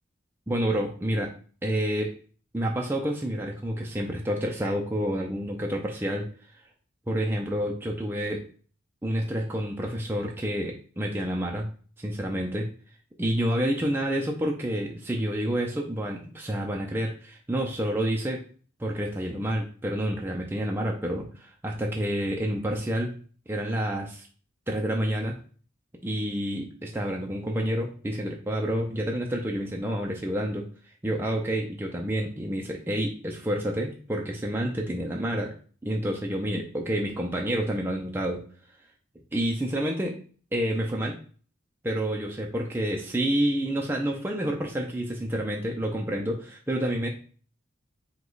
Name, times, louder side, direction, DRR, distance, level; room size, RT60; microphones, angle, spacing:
voice 1, 0.5-1.3 1.6-2.1 2.5-6.3 7.1-8.4 9.0-11.7 12.0-12.7 13.2-18.4 18.8-23.1 23.5-24.3 24.7-25.4 26.0-30.7 31.0-35.5 35.8-38.4 39.3-40.1 40.5-41.2 41.8-47.1, equal, 10° right, 0 dB, 0.4 m, -29 dB
4.9 x 2.3 x 3.9 m, 0.42 s
head